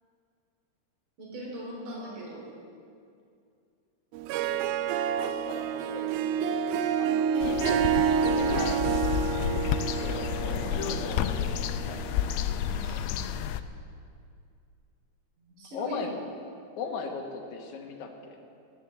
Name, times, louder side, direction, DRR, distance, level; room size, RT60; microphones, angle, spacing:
voice 1, 1.2-2.5 7.3-7.4 12.6-13.1 15.4-16.1, right 1 dB, 60° right, -3 dB, 5.0 m, -40 dB
Harp, 4.1-12.7, right 7 dB, 85° right, 2.4 m, -29 dB
voice 2, 5.1-8.1 8.3-9.0 10.0-12.0 15.7-16.1 16.8-18.4, left 5 dB, 60° left, 1 dB, 2.5 m, -38 dB
sound 1, 7.4-13.6, left 10 dB, 85° left, 2.4 m, -31 dB
14.0 x 10.5 x 7.6 m, 2.4 s
omnidirectional pair, 4.2 m